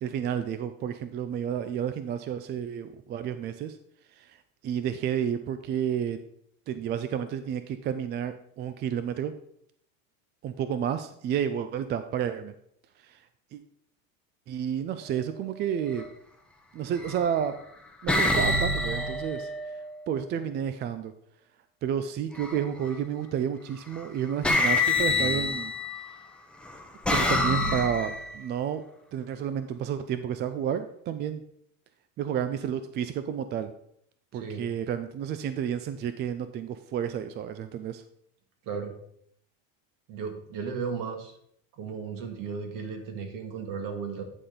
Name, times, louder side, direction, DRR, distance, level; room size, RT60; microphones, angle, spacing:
voice 1, 0.0-3.8 4.1-4.4 4.6-6.2 6.7-9.3 10.4-12.5 13.0-13.2 13.5-13.6 14.5-16.0 16.7-17.5 18.0-19.5 20.1-21.1 21.8-25.7 27.1-28.8 29.1-31.4 32.2-33.7 34.3-38.0, right 8 dB, 30° right, 11 dB, 0.3 m, -31 dB
sound 1, 15.8-16.1 17.0-17.4 18.1-20.1 22.3-22.9 23.9-24.0 24.4-26.1 26.6-28.4, left 2 dB, 5° left, 0.8 m, -27 dB
voice 2, 34.3-34.7 38.6-39.0 40.1-41.4 41.7-44.2, right 5 dB, 55° right, 4 dB, 1.9 m, -35 dB
10.0 x 4.3 x 5.0 m, 0.69 s
supercardioid pair, 125°, 38 cm